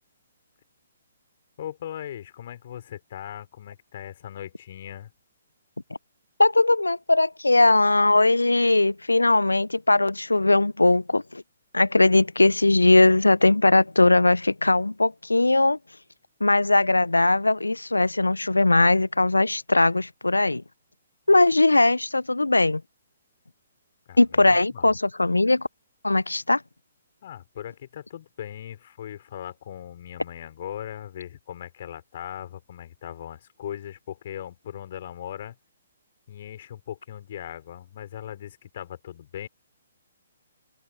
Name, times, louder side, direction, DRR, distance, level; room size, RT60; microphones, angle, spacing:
voice 1, 1.6-5.1 24.1-25.0 27.2-35.6 36.3-39.5, left 10 dB, 50° left, 5.3 m, -39 dB
voice 2, 6.4-11.4 11.7-15.8 16.4-20.6 21.3-22.8 24.2-25.7 26.0-26.6, left 2 dB, 85° left, 0.8 m, -20 dB
open air
figure-of-eight pair, 125°, 0 cm